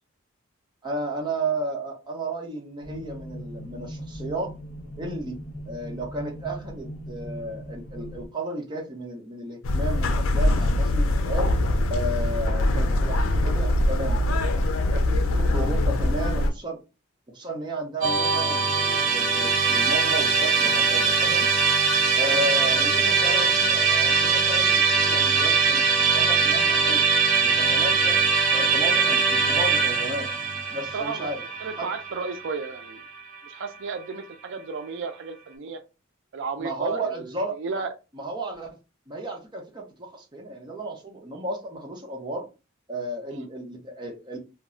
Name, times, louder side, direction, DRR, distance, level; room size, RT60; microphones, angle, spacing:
voice 1, 0.8-4.6 5.0-5.4 5.7-11.5 11.9-14.2 14.9-16.8 17.3-21.5 22.1-27.0 27.4-28.2 28.5-30.3 30.7-31.4 31.8-31.9 36.6-37.8 38.1-38.8 39.1-42.5 42.9-44.4, right 1 dB, 20° right, 0.7 m, -33 dB
sound 1, 2.8-8.3, equal, 45° left, 0.6 m, -39 dB
sound 2, 9.6-16.5, left 1 dB, 80° left, 0.4 m, -23 dB
Musical instrument, 18.0-33.2, right 5 dB, 80° right, 0.9 m, -22 dB
voice 2, 30.9-31.3 31.6-33.0 33.4-35.8 36.3-37.9 43.3-43.5, right 4 dB, 65° right, 0.4 m, -33 dB
2.2 x 2.0 x 3.6 m
head